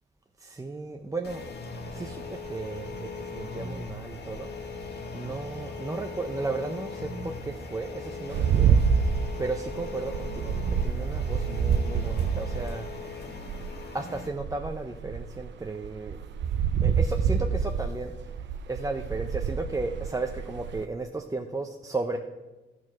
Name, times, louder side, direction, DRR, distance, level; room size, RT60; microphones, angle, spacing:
voice 1, 0.4-1.4 1.9-4.5 5.1-8.8 9.1-12.9 13.9-16.2 16.8-18.1 18.7-22.2, right 3 dB, 15° right, 4 dB, 0.5 m, -34 dB
sound 1, 1.2-14.3, left 3 dB, 55° left, 1.3 m, -39 dB
sound 2, 8.3-13.8 14.3-20.8, right 7 dB, 65° right, 0.6 m, -27 dB
12.5 x 4.7 x 6.0 m, 1.2 s
cardioid pair, 90°, 20 cm